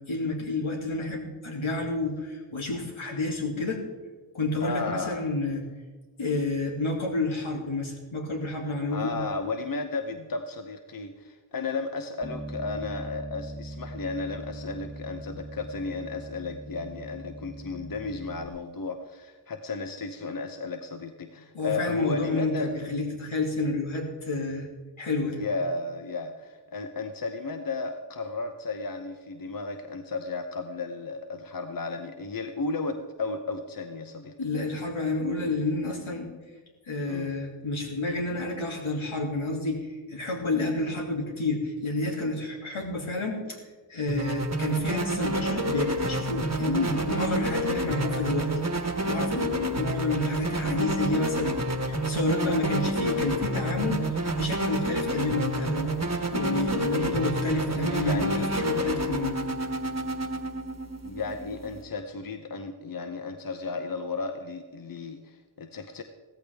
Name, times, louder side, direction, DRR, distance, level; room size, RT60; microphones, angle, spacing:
voice 1, 0.0-3.8 4.3-5.6 6.2-9.2 21.5-24.7 25.0-25.4 34.4-36.3 36.9-43.6 43.9-48.5 49.1-51.6 51.9-54.0 54.4-55.9 56.3-59.4, left 2 dB, 75° left, -1 dB, 2.8 m, -29 dB
voice 2, 4.6-5.3 8.9-22.9 25.4-34.3 37.1-37.3 50.6-50.9 57.7-58.5 61.0-66.0, left 3 dB, 45° left, 6 dB, 0.9 m, -34 dB
Bass guitar, 12.2-18.5, right 1 dB, 10° left, 1.2 m, -41 dB
sound 1, 44.1-61.8, right 1 dB, 35° right, 1.4 m, -29 dB
15.5 x 14.0 x 3.5 m, 1.3 s
wide cardioid pair, 65°, 48 cm